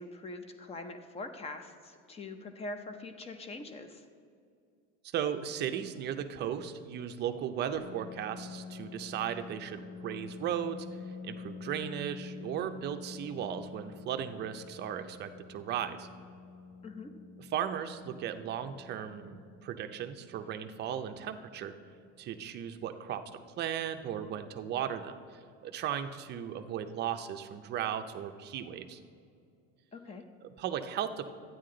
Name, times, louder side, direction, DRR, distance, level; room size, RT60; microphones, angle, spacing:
voice 1, 0.0-4.0 16.8-17.1 29.9-30.2, left 2 dB, 20° left, 8 dB, 0.6 m, -43 dB
voice 2, 5.1-10.9 11.2-16.1 17.5-21.7 22.2-23.2 23.6-25.1 25.6-29.0 30.4-31.3, right 9 dB, 35° right, 8 dB, 0.5 m, -36 dB
Piano, 7.7-23.2, left 5 dB, 80° left, 0.7 m, -48 dB
12.5 x 9.3 x 3.8 m, 2.4 s
cardioid pair, 160°, 31 cm